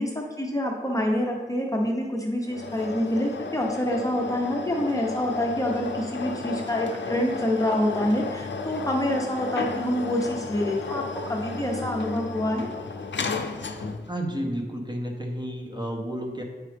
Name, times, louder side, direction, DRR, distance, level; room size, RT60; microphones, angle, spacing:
voice 1, 0.0-11.0 11.3-12.7, left 1 dB, 20° left, 0 dB, 0.8 m, -26 dB
sound 1, 2.4-14.2, left 4 dB, 85° left, 0.5 m, -34 dB
voice 2, 14.1-16.4, equal, 25° right, 1 dB, 1.0 m, -31 dB
8.9 x 4.8 x 3.4 m, 1.4 s
wide cardioid pair, 75°, 18 cm